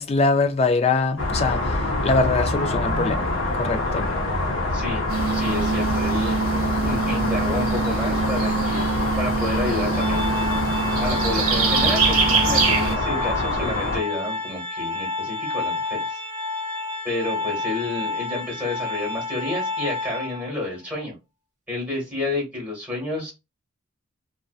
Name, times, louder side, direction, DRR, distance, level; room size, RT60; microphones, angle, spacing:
voice 1, 0.0-4.1, left 3 dB, 30° left, 0.3 m, -23 dB
sound 1, 1.2-14.0, left 2 dB, 65° left, 0.7 m, -25 dB
voice 2, 4.7-5.0 5.3-6.4 6.8-8.9 9.2-10.3 11.0-16.2 17.0-21.2 21.7-23.3, left 2 dB, 5° right, 1.3 m, -30 dB
sound 2, 5.1-13.0, right 5 dB, 85° right, 0.7 m, -24 dB
Organ, 9.9-20.6, left 3 dB, 35° right, 0.8 m, -30 dB
2.5 x 2.1 x 2.3 m
head